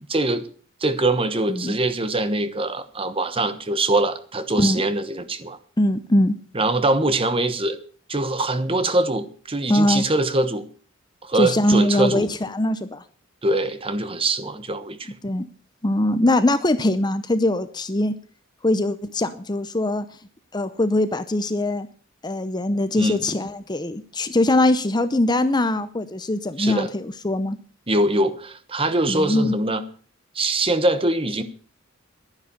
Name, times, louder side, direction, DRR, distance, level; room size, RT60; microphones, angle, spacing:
voice 1, 0.1-0.4 0.8-5.6 6.5-7.8 8.1-10.7 11.2-12.3 13.4-15.1 22.9-23.2 26.6-26.9 27.9-29.8 30.3-31.4, right 2 dB, 25° right, 11 dB, 1.2 m, -23 dB
voice 2, 5.8-6.4 9.7-10.0 11.3-13.0 15.2-15.5 15.8-18.1 18.6-20.1 20.5-21.9 22.2-27.6 29.1-29.5, left 1 dB, 20° left, 12 dB, 0.7 m, -22 dB
11.5 x 10.0 x 7.0 m, 0.43 s
head